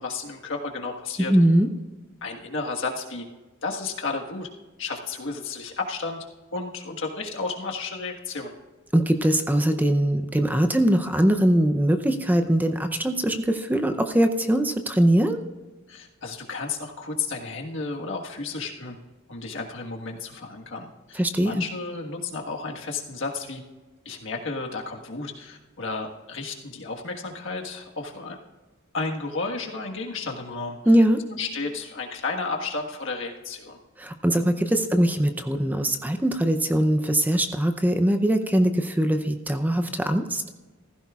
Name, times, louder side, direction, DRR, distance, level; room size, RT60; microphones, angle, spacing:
voice 1, 0.0-1.3 2.2-3.2 3.6-4.5 4.8-6.2 6.5-8.5 15.9-19.0 19.3-23.6 24.0-28.4 28.9-30.8 31.3-33.8, left 3 dB, 65° left, 1 dB, 1.5 m, -32 dB
voice 2, 1.2-1.7 8.9-15.4 21.1-21.6 30.9-31.2 34.0-40.4, right 1 dB, 10° right, 7 dB, 0.6 m, -21 dB
16.0 x 15.0 x 2.4 m, 1.2 s
head